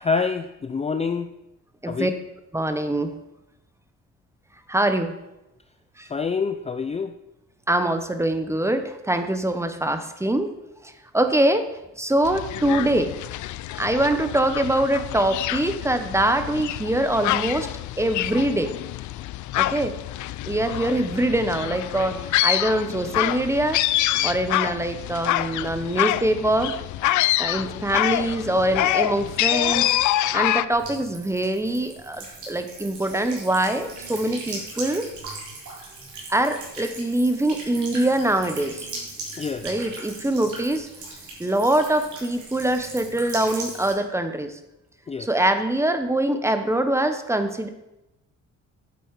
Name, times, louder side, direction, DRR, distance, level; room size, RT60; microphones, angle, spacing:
voice 1, 0.0-1.3 1.9-2.1 6.1-7.1 39.4-39.7 45.1-45.3, left 5 dB, 20° left, 8 dB, 0.5 m, -26 dB
voice 2, 2.5-3.1 4.7-5.1 6.0-6.1 7.7-10.5 11.1-11.6 12.0-13.1 13.8-17.7 18.0-18.8 19.6-19.9 20.5-23.8 24.2-26.7 27.4-29.9 30.3-35.1 36.3-38.9 39.6-40.9 41.4-44.5 45.2-47.7, right 1 dB, 10° right, 9 dB, 1.0 m, -23 dB
sound 1, 12.2-30.6, left 14 dB, 75° left, 0.5 m, -26 dB
Buzz / Water tap faucet / Trickle dribble, 30.7-43.9, right 3 dB, 70° right, 4.0 m, -38 dB
9.4 x 7.8 x 4.8 m, 0.92 s
cardioid pair, 90°, 30 cm